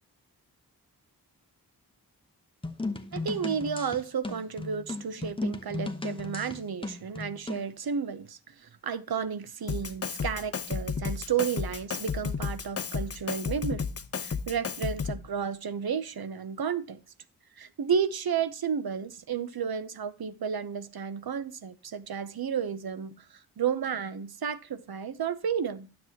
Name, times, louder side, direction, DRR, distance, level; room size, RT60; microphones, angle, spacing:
sound 1, 2.6-7.7, left 2 dB, 15° left, 0.9 m, -36 dB
voice 1, 3.1-13.9 14.2-17.0 17.6-23.2 23.6-25.9, right 7 dB, 70° right, 0.8 m, -32 dB
Drum kit, 9.7-15.3, left 5 dB, 40° left, 0.6 m, -33 dB
9.8 x 7.5 x 2.8 m
wide cardioid pair, 65°, 38 cm